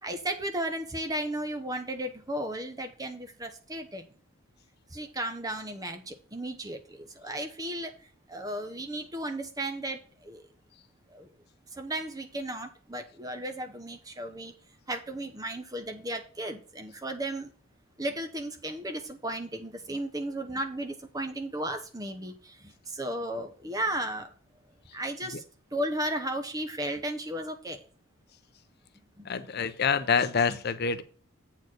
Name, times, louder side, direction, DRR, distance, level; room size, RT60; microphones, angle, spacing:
voice 1, 0.0-4.1 4.9-7.9 8.3-10.4 11.1-11.3 11.8-14.5 14.9-17.5 18.0-24.3 24.9-25.4 25.7-27.8 29.2-29.3, right 1 dB, 15° right, 6 dB, 0.9 m, -34 dB
voice 2, 29.3-31.0, left 6 dB, 45° left, 11 dB, 0.5 m, -26 dB
8.0 x 4.5 x 6.2 m, 0.41 s
head